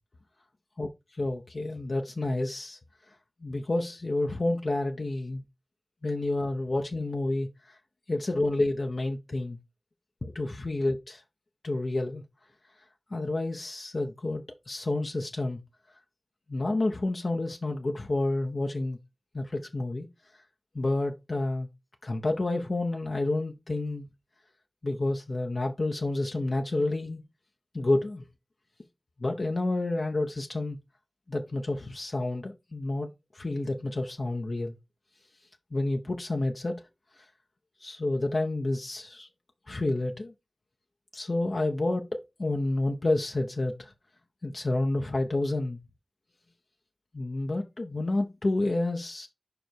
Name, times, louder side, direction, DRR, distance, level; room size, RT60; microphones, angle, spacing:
voice 1, 1.2-2.8 3.4-5.4 6.0-7.5 8.1-9.6 10.2-11.2 11.6-12.2 13.1-15.6 16.5-19.0 19.3-20.1 20.7-21.7 22.0-24.1 24.8-27.2 27.7-28.2 29.2-30.8 31.3-33.1 33.3-34.8 35.7-36.8 37.8-39.3 39.7-40.3 41.1-43.9 44.4-45.8 47.1-49.3, left 2 dB, 60° left, 1.0 m, -29 dB
5.1 x 5.0 x 4.6 m
wide cardioid pair, 60°, 0 cm